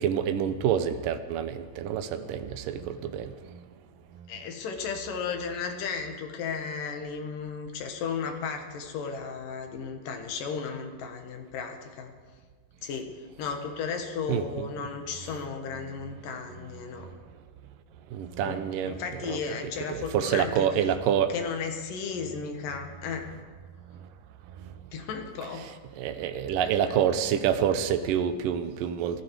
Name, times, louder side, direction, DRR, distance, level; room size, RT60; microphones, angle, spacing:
voice 1, 0.0-3.3 14.3-14.7 18.1-19.0 19.2-19.4 19.9-21.3 26.0-29.2, right 9 dB, 90° right, 10 dB, 2.5 m, -27 dB
voice 2, 4.3-12.1 12.8-13.1 13.4-17.1 18.4-18.6 18.8-21.0 21.3-23.3 24.9-25.7 26.7-26.9, left 5 dB, 85° left, 5 dB, 3.2 m, -34 dB
17.5 x 15.0 x 4.8 m, 1.5 s
omnidirectional pair, 3.7 m